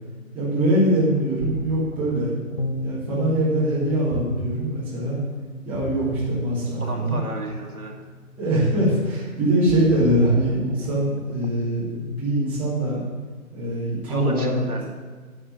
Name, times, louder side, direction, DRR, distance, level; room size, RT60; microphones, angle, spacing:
voice 1, 0.3-2.4 2.8-5.2 5.6-7.2 8.4-13.0 13.5-14.5, right 1 dB, 5° right, -10 dB, 1.4 m, -23 dB
Ocean, 1.1-11.7, right 3 dB, 50° right, 0.7 m, -37 dB
sound 1, 2.6-10.3, left 3 dB, 30° left, 0.7 m, -36 dB
voice 2, 6.8-7.9 14.1-14.9, right 2 dB, 75° right, 0 dB, 2.2 m, -33 dB
9.9 x 4.9 x 7.7 m, 1.4 s
figure-of-eight pair, 150°, 44 cm